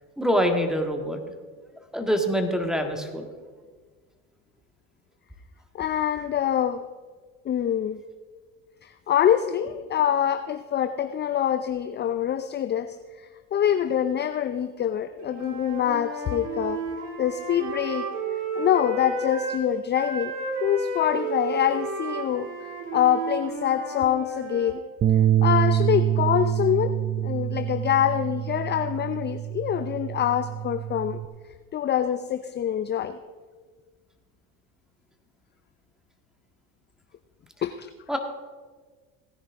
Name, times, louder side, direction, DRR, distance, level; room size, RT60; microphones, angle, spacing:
voice 1, 0.2-1.2 1.9-3.3 38.1-38.2, equal, ahead, 4 dB, 1.7 m, -25 dB
voice 2, 5.7-6.8 7.4-8.0 8.8-16.8 17.2-18.1 18.6-20.3 20.6-22.5 22.9-24.8 25.4-26.9 27.2-31.2 31.7-33.2 37.6-37.9, left 10 dB, 30° left, 10 dB, 0.5 m, -25 dB
Wind instrument woodwind instrument, 15.2-19.6 19.9-24.8, right 3 dB, 85° right, 2.4 m, -32 dB
Bass guitar, 25.0-31.3, right 11 dB, 25° right, 0.4 m, -25 dB
17.5 x 9.9 x 3.6 m, 1.5 s
supercardioid pair, 85°, 37 cm